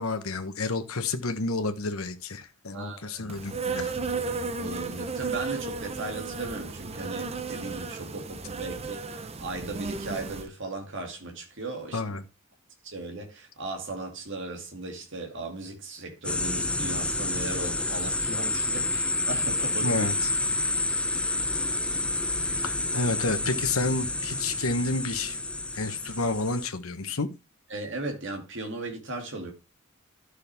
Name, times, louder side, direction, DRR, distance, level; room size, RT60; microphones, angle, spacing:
voice 1, 0.0-3.9 11.9-12.2 18.8-18.9 19.8-20.3 22.6-25.4 25.7-27.3, left 3 dB, 85° left, 1.3 m, -30 dB
voice 2, 2.7-3.3 4.1-12.2 12.8-20.1 22.4-22.6 27.7-29.5, right 2 dB, 60° right, 2.5 m, -37 dB
Insect, 3.3-10.5, right 4 dB, 30° right, 0.7 m, -34 dB
sound 1, 16.2-26.7, left 2 dB, 5° left, 0.7 m, -29 dB
12.0 x 6.4 x 3.5 m
head